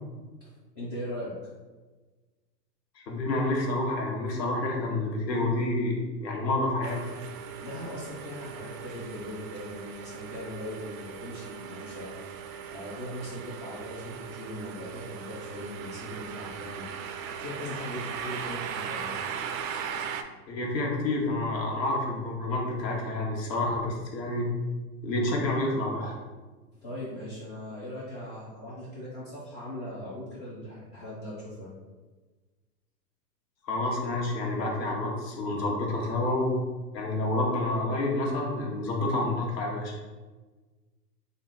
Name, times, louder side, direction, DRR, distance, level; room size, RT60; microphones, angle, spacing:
voice 1, 0.7-1.3 7.6-12.1 12.7-16.9 17.4-19.1 26.7-31.7, left 1 dB, 15° left, -9 dB, 0.3 m, -39 dB
voice 2, 3.1-7.0 20.5-24.5 25.0-26.2 33.6-36.5 36.9-39.9, left 2 dB, 85° left, -2 dB, 1.2 m, -29 dB
sound 1, 6.8-20.2, right 7 dB, 55° right, 0.5 m, -38 dB
3.7 x 2.4 x 3.9 m, 1.3 s
hypercardioid pair, 120°, 49 cm